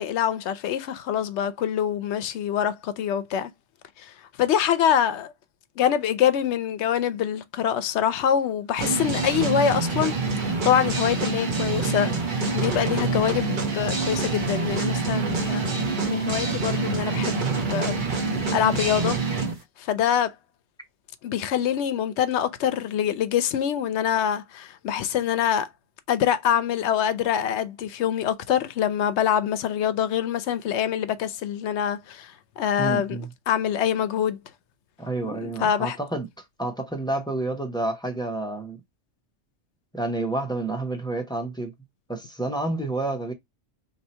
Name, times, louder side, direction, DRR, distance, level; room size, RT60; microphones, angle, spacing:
voice 1, 0.0-3.5 4.0-5.3 5.8-10.2 10.6-15.8 16.1-17.4 17.7-18.0 18.5-19.2 19.8-20.3 21.2-25.7 26.1-33.2 33.5-34.4 35.4-36.0, left 9 dB, 75° left, 0.8 m, -25 dB
sound 1, 8.8-19.5, right 3 dB, 50° right, 0.8 m, -26 dB
voice 2, 32.8-33.3 35.0-36.3 36.6-38.8 39.9-41.7 42.1-43.3, right 2 dB, 5° left, 0.6 m, -29 dB
2.7 x 2.7 x 4.2 m
omnidirectional pair, 1.2 m